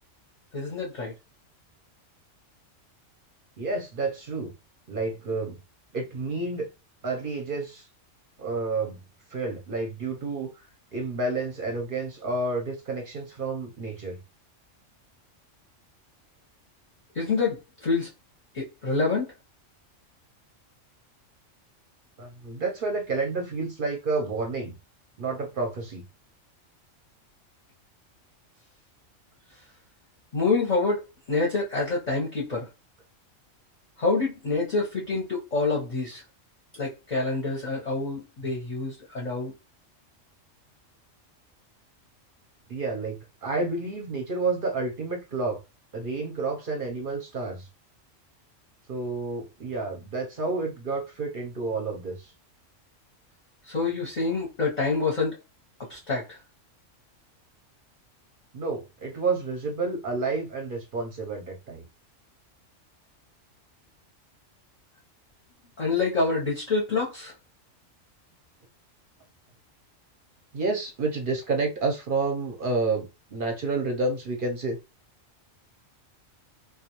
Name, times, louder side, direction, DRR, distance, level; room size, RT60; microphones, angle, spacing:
voice 1, 0.5-1.1 17.1-18.1 18.5-19.3 30.3-32.7 34.0-36.2 36.7-39.5 53.6-55.4 55.9-56.4 65.8-67.3, left 3 dB, 40° left, 0.7 m, -27 dB
voice 2, 3.6-4.5 4.9-5.6 5.9-6.7 7.0-7.9 8.4-9.0 9.3-14.2 22.2-24.7 25.2-26.0 42.7-45.6 45.9-47.7 48.9-52.3 58.5-61.8 70.5-74.8, right 3 dB, 55° right, 0.6 m, -30 dB
2.3 x 2.3 x 2.9 m
omnidirectional pair, 1.3 m